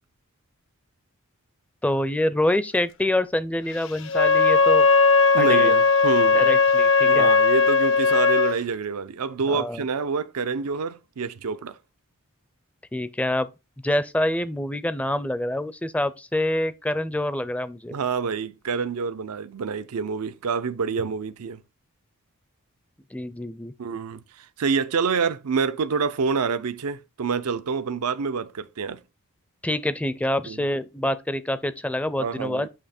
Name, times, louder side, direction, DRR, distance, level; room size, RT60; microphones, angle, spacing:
voice 1, 1.8-4.9 5.4-5.7 6.3-7.3 9.5-9.8 12.9-13.5 13.8-17.9 23.1-23.7 29.6-32.7, left 1 dB, 5° left, 0.4 m, -26 dB
Wind instrument woodwind instrument, 4.1-8.6, left 4 dB, 60° left, 0.6 m, -18 dB
voice 2, 5.3-6.5 7.0-11.8 17.9-21.6 23.8-29.0 30.5-30.6 32.2-32.7, right 5 dB, 85° right, 0.5 m, -27 dB
8.6 x 2.9 x 4.2 m
head